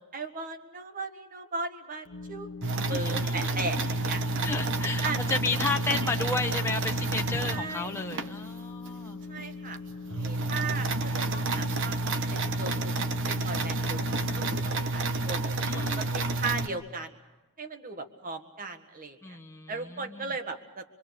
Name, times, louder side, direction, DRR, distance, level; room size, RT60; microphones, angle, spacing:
voice 1, 0.1-4.4 5.0-5.2 7.4-7.9 9.3-9.8 10.2-12.9 13.3-17.1 17.6-19.4 19.7-20.8, right 3 dB, 40° right, 6 dB, 1.7 m, -37 dB
sound 1, 2.1-3.2 3.7-14.6, left 3 dB, 70° left, 0.9 m, -41 dB
sound 2, 2.6-8.3 8.9-9.0 9.4-9.5 9.7-16.7, right 2 dB, 60° right, 1.1 m, -29 dB
voice 2, 2.9-3.9 4.4-9.2 15.6-16.1 19.2-20.3, left 3 dB, 10° left, 1 dB, 1.2 m, -33 dB
24.5 x 24.5 x 6.7 m, 1.1 s
head